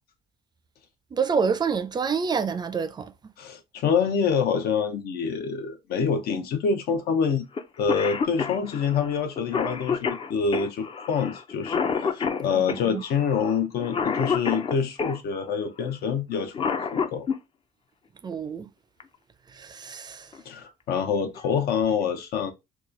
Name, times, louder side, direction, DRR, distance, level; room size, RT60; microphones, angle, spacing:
voice 1, 1.1-3.1 12.5-12.6 12.9-13.0 18.2-18.7 19.5-20.3, right 6 dB, 25° right, 0.4 m, -27 dB
voice 2, 3.4-7.5 7.8-17.3 20.4-22.5, left 6 dB, 70° left, 0.8 m, -26 dB
Cough, 7.6-7.7 7.9-15.2 16.3-17.4 19.0-19.1 20.1-20.4 20.9-21.0 21.4-21.8, left 6 dB, 30° left, 0.5 m, -28 dB
3.0 x 2.3 x 3.7 m
cardioid pair, 110°, 17 cm